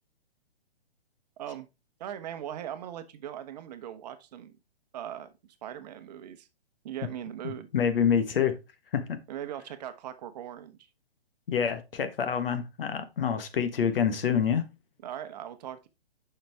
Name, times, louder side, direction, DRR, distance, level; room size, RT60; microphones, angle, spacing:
voice 1, 1.4-1.7 2.0-4.5 4.9-5.3 5.6-6.5 6.8-7.7 9.3-10.8 15.0-15.9, right 10 dB, 40° right, 1.0 m, -39 dB
voice 2, 7.4-8.5 8.9-9.2 11.5-14.6, left 7 dB, 65° left, 1.4 m, -27 dB
7.4 x 5.8 x 3.5 m
hypercardioid pair, 135°, 31 cm